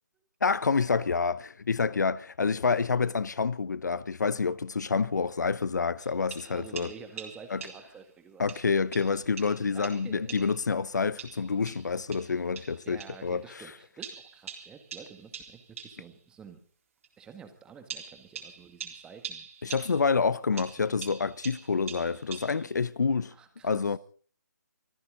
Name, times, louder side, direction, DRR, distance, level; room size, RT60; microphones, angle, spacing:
voice 1, 0.4-6.9 7.5-7.6 8.4-13.7 19.6-23.3 23.6-24.0, left 5 dB, 70° left, 0.9 m, -28 dB
sound 1, 6.0-8.0 8.5-10.7 11.2-13.3 14.0-16.1 17.0-17.1 17.9-20.2 20.6-22.8, right 6 dB, 45° right, 3.7 m, -44 dB
voice 2, 6.5-8.7 9.7-10.4 12.9-16.6 17.2-19.5 23.3-24.0, right 6 dB, 10° right, 1.8 m, -49 dB
25.0 x 14.0 x 3.9 m
figure-of-eight pair, 150°, 10 cm